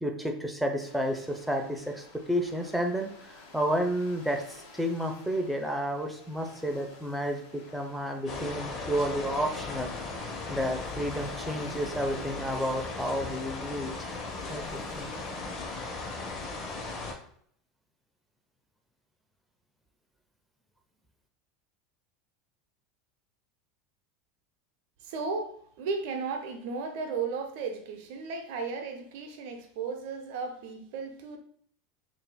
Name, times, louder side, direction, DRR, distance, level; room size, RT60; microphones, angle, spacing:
voice 1, 0.0-9.9 10.5-14.1 14.5-15.1, equal, 5° right, 2 dB, 0.7 m, -31 dB
sound 1, 0.8-17.2, left 2 dB, 65° left, 1.2 m, -52 dB
sound 2, 8.3-17.1, left 3 dB, 40° left, 1.1 m, -37 dB
voice 2, 25.0-31.4, right 4 dB, 65° right, 5 dB, 0.7 m, -35 dB
6.6 x 2.7 x 2.3 m, 0.63 s
hypercardioid pair, 85°, 0 cm